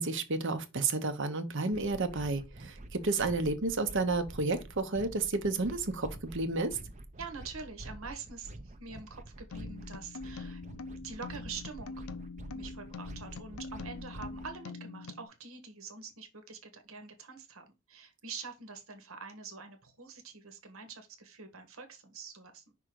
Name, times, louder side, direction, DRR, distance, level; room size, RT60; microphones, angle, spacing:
voice 1, 0.0-6.8, right 3 dB, 60° right, 1.0 m, -31 dB
sound 1, 1.7-14.5, right 1 dB, 35° right, 0.7 m, -48 dB
voice 2, 7.2-10.6 11.0-12.0 12.5-22.7, right 4 dB, 75° right, 1.4 m, -45 dB
sound 2, 9.5-15.2, left 4 dB, 80° left, 0.7 m, -44 dB
5.7 x 3.8 x 4.6 m
head